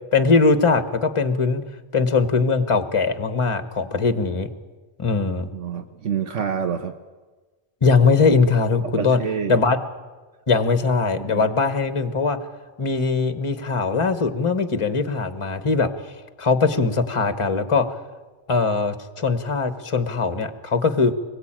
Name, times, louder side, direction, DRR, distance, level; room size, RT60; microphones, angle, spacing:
voice 1, 0.1-1.6 1.9-4.5 5.0-5.5 7.8-9.2 9.5-9.8 10.5-12.4 12.8-15.9 16.4-17.9 18.5-21.1, left 4 dB, 25° left, 10 dB, 1.3 m, -20 dB
voice 2, 5.5-6.9 9.0-9.6 11.2-11.5, right 7 dB, 75° right, 6 dB, 1.3 m, -27 dB
25.0 x 21.5 x 8.9 m, 1.3 s
omnidirectional pair, 1.2 m